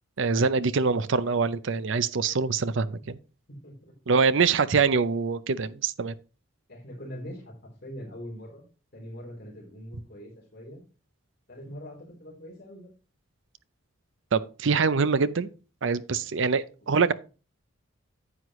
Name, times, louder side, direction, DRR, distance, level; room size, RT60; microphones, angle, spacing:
voice 1, 0.2-3.2 4.1-6.1 14.3-15.5 15.8-17.1, right 5 dB, 60° right, 0.5 m, -24 dB
voice 2, 3.5-3.9 6.7-8.6 8.9-10.8 11.5-12.9, equal, 45° left, 3.6 m, -43 dB
9.6 x 7.9 x 3.1 m
head